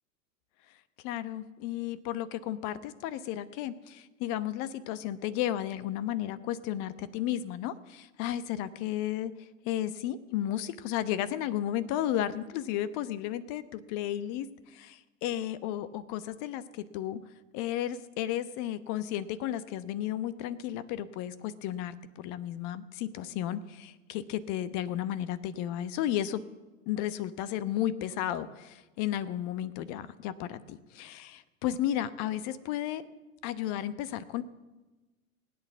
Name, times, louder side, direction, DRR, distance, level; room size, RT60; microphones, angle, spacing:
voice 1, 1.0-17.2 17.5-26.4 26.9-33.0 33.4-34.4, left 12 dB, 45° left, 15 dB, 1.0 m, -33 dB
19.0 x 8.8 x 7.0 m, 1.1 s
figure-of-eight pair, 90°, 42 cm